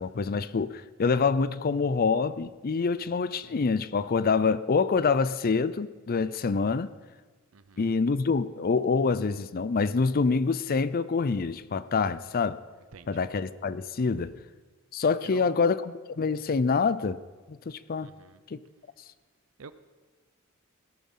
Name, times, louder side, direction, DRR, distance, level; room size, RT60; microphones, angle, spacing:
voice 1, 0.0-6.9 7.8-12.6 13.1-14.3 14.9-17.2 17.5-18.1 18.5-18.6, left 4 dB, 45° left, 0.5 m, -26 dB
voice 2, 7.5-7.9 12.9-13.3 15.2-15.7 18.0-18.4 19.6-19.7, right 4 dB, 70° right, 0.6 m, -48 dB
17.0 x 10.5 x 5.6 m
head